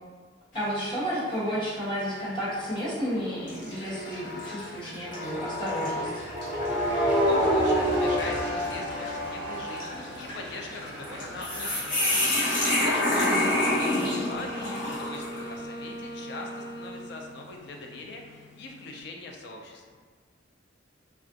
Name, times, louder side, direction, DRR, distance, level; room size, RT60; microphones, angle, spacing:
sound 1, 0.5-1.0 1.5-1.7 2.6-2.9 3.5-15.5, left 1 dB, 75° left, 1.2 m, -30 dB
voice 1, 0.5-6.2 13.1-13.5, equal, 25° left, -9 dB, 0.9 m, -32 dB
sound 2, 1.8-4.6 5.0-15.5, equal, 5° right, 1.1 m, -31 dB
voice 2, 7.1-19.8, left 2 dB, 60° left, 1 dB, 0.4 m, -41 dB
Wind instrument woodwind instrument, 13.2-17.5, right 1 dB, 35° right, 0.4 m, -39 dB
3.3 x 2.4 x 2.5 m, 1.5 s
head